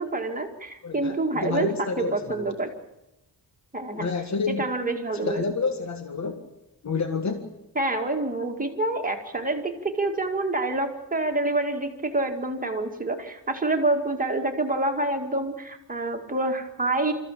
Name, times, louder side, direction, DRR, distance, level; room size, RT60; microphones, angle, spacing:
voice 1, 0.0-2.7 3.7-4.1 4.5-5.4 7.8-17.1, right 2 dB, 20° right, 4 dB, 2.2 m, -27 dB
voice 2, 0.8-2.5 3.9-4.6 5.1-6.5 6.8-7.5, left 4 dB, 40° left, 6 dB, 1.8 m, -29 dB
28.0 x 14.5 x 8.5 m, 0.94 s
wide cardioid pair, 160°, 42 cm